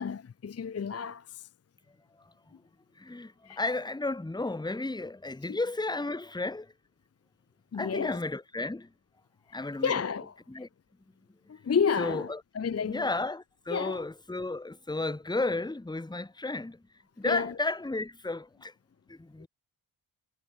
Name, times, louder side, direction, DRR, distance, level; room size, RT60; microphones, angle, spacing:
voice 1, 0.0-1.5 3.4-3.6 5.5-5.6 7.7-8.2 9.5-10.3 11.5-13.1 13.7-14.0 17.2-17.6, left 6 dB, 35° left, 0.5 m, -31 dB
voice 2, 3.0-6.7 7.7-8.9 9.5-10.0 10.5-10.7 12.0-12.4 12.8-16.8 17.2-18.7 19.1-19.5, left 2 dB, 10° left, 1.2 m, -33 dB
wide cardioid pair, 165°, 46 cm